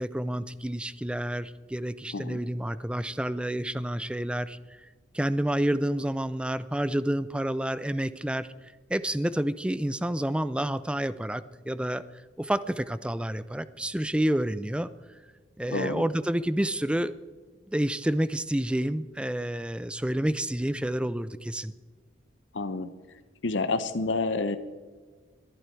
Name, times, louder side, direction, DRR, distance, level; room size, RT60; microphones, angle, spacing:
voice 1, 0.0-4.8 5.1-8.5 8.9-12.0 12.4-14.9 15.6-17.1 17.7-21.7, right 1 dB, 5° right, 16 dB, 0.4 m, -29 dB
voice 2, 15.7-16.1 22.5-22.9 23.4-24.6, left 3 dB, 75° left, 11 dB, 0.8 m, -29 dB
21.5 x 11.5 x 4.6 m, 1.5 s
head